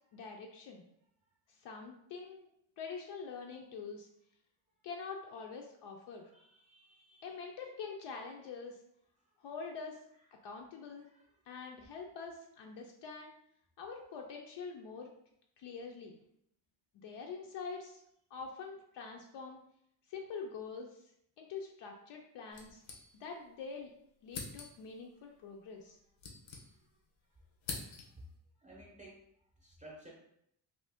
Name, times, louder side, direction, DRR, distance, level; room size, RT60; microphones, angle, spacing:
voice 1, 0.1-0.8 1.6-2.5 2.8-4.1 4.8-6.3 7.2-8.8 9.4-10.0 10.4-11.1 11.5-13.3 13.8-15.1 15.6-16.2 17.0-18.0 18.3-19.6 20.1-21.0 21.4-22.8 23.1-23.9 24.2-26.0, left 5 dB, 70° left, 1 dB, 0.5 m, -45 dB
voice 2, 6.3-7.3 11.1-11.2 28.6-29.1 29.6-30.1, right 1 dB, 15° right, -4 dB, 0.6 m, -55 dB
sound 1, 22.5-23.5 23.8-23.9 24.3-25.0 25.8-27.1 27.3-28.3, left 4 dB, 90° left, 0.8 m, -46 dB
2.8 x 2.7 x 3.4 m, 0.73 s
cardioid pair, 155°, 44 cm